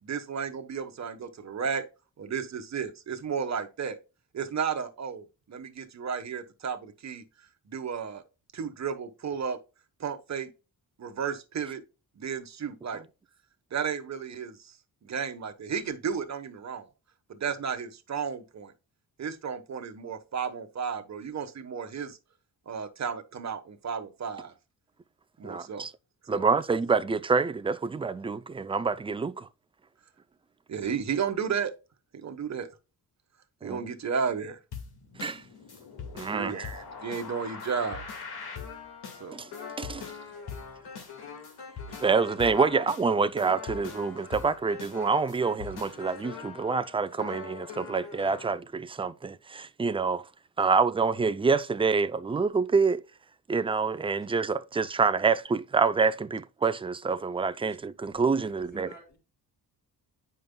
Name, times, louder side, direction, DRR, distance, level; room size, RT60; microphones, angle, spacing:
voice 1, 0.0-1.8 2.2-4.0 4.3-7.2 7.7-8.2 8.5-9.6 10.0-10.5 11.0-11.8 12.2-13.0 13.7-14.8 15.0-16.9 17.3-18.7 19.2-22.2 22.7-24.5 25.4-25.9 26.3-26.5 30.7-31.7 32.1-32.7 33.6-34.6 36.3-38.0 39.2-39.4, right 6 dB, 45° right, 1.2 m, -33 dB
voice 2, 25.4-25.9 26.3-29.5 33.6-33.8 35.2-35.4 36.1-36.5 39.3-39.5 39.8-40.1 42.0-50.2 50.6-53.0 53.5-58.9, right 4 dB, 15° right, 0.4 m, -27 dB
sound 1, 34.7-48.5, left 6 dB, 85° left, 1.9 m, -42 dB
voice 3, 58.5-59.2, left 3 dB, 25° left, 3.4 m, -50 dB
9.3 x 5.2 x 2.2 m
cardioid pair, 95°, 38 cm